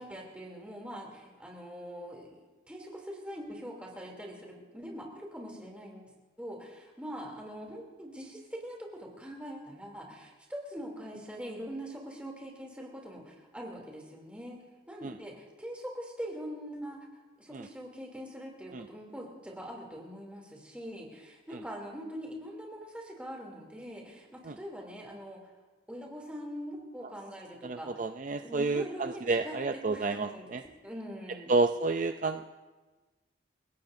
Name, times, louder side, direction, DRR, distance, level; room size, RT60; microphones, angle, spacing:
voice 1, 0.0-6.1 6.4-14.6 14.9-17.1 17.4-25.4 25.9-27.9 28.4-29.6 29.9-30.5 30.8-31.5, equal, 5° right, -1 dB, 2.9 m, -43 dB
voice 2, 27.6-30.6 31.5-32.5, right 3 dB, 40° right, 7 dB, 0.4 m, -30 dB
29.5 x 17.0 x 2.7 m, 1.2 s
head